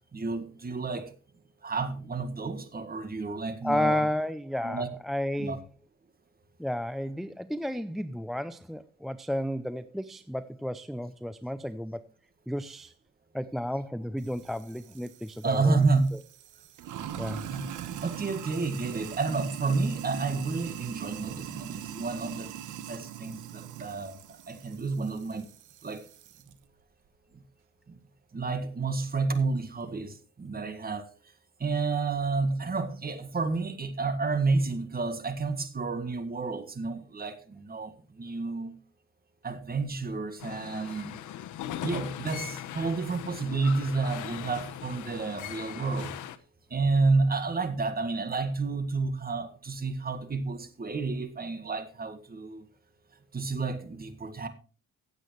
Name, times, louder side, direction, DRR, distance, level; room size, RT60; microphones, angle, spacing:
voice 1, 0.1-1.1 1.6-4.0 4.6-4.9 5.4-5.6 15.4-16.1 17.5-17.7 18.0-22.6 22.9-25.5 25.8-26.1 27.9-28.0 28.3-31.1 31.6-38.7 39.4-41.2 41.8-46.2 46.7-52.7 53.3-54.5, right 3 dB, 30° right, 1.7 m, -30 dB
voice 2, 3.6-5.6 6.6-12.1 12.5-12.9 13.3-16.2 17.2-17.5, left 1 dB, ahead, 0.5 m, -32 dB
Sink (filling or washing), 14.2-26.5, right 10 dB, 80° right, 1.2 m, -41 dB
sound 1, 40.4-46.4, left 11 dB, 80° left, 0.9 m, -39 dB
15.5 x 8.3 x 3.1 m
cardioid pair, 90°, 30 cm